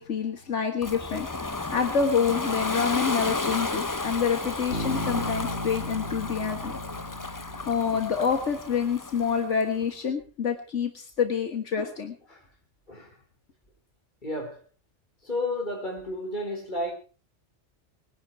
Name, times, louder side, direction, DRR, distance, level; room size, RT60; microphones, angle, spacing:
voice 1, 0.0-6.8 7.4-12.2, left 6 dB, 80° left, 1.9 m, -27 dB
Ocean, 0.8-9.6, left 2 dB, 20° left, 0.8 m, -33 dB
Bass guitar, 4.7-8.4, left 1 dB, 60° left, 2.9 m, -36 dB
voice 2, 12.9-13.2 14.2-14.6 15.2-16.9, left 1 dB, 40° left, 4.8 m, -32 dB
21.5 x 11.5 x 4.7 m
omnidirectional pair, 1.2 m